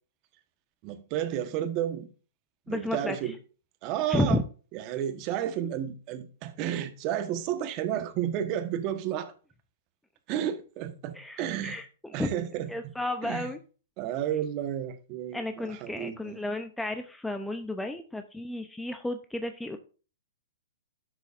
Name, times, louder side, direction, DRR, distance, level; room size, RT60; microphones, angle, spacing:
voice 1, 0.8-2.1 2.7-3.3 3.8-4.4 4.7-9.3 10.3-11.8 12.1-12.9 13.2-13.5 14.0-16.4, right 10 dB, 40° right, 1.2 m, -32 dB
voice 2, 2.7-3.3 4.1-4.4 11.1-11.9 12.2-12.4 12.7-13.6 15.3-19.8, left 1 dB, 5° left, 0.6 m, -32 dB
12.5 x 6.2 x 2.5 m
hypercardioid pair, 135°, 0 cm